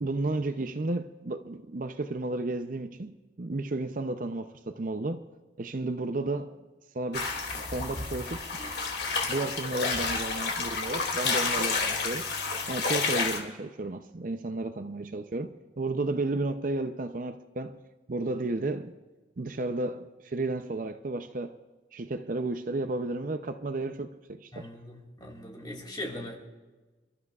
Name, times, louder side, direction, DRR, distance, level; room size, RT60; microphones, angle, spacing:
voice 1, 0.0-5.2 5.6-6.6 6.9-7.3 7.7-8.4 9.3-12.3 12.7-17.8 18.1-18.9 19.4-21.5 21.9-24.7, right 2 dB, 45° right, 0.6 m, -33 dB
sound 1, 7.1-13.4, left 4 dB, 60° left, 2.5 m, -30 dB
voice 2, 24.5-26.4, left 1 dB, 25° left, 2.5 m, -40 dB
29.5 x 13.0 x 2.4 m
head